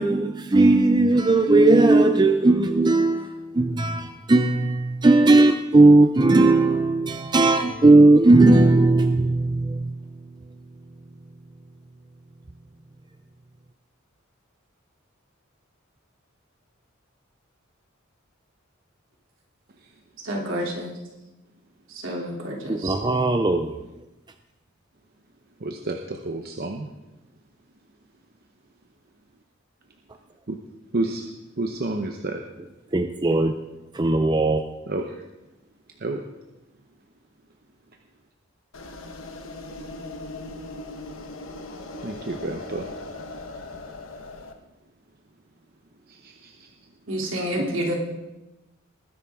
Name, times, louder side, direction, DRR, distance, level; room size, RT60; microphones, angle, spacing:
voice 1, 0.0-9.9 22.7-23.7 32.9-33.5 33.9-34.6, right 2 dB, 20° right, 0.5 m, -17 dB
voice 2, 20.2-20.9 21.9-23.0 47.1-48.0, equal, 70° right, 3.0 m, -29 dB
voice 3, 25.6-26.9 30.5-30.6 30.9-31.3 31.6-32.4 34.9-35.2 36.0-36.2 42.0-42.9 46.1-46.7, right 2 dB, 50° right, 0.8 m, -30 dB
sound 1, 38.7-44.5, left 2 dB, 85° left, 1.3 m, -39 dB
20.0 x 10.5 x 3.7 m
head